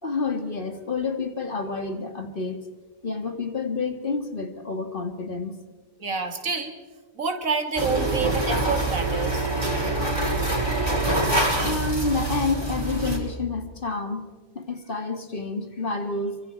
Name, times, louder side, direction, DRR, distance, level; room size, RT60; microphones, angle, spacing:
voice 1, 0.0-2.7 3.0-5.6 11.0-16.4, left 4 dB, 35° left, 6 dB, 2.1 m, -29 dB
voice 2, 6.0-6.7 7.2-9.5, right 4 dB, 60° right, 7 dB, 2.3 m, -28 dB
sound 1, 7.8-13.2, right 2 dB, 15° right, 5.4 m, -25 dB
28.5 x 24.0 x 4.6 m, 1.3 s
omnidirectional pair, 1.6 m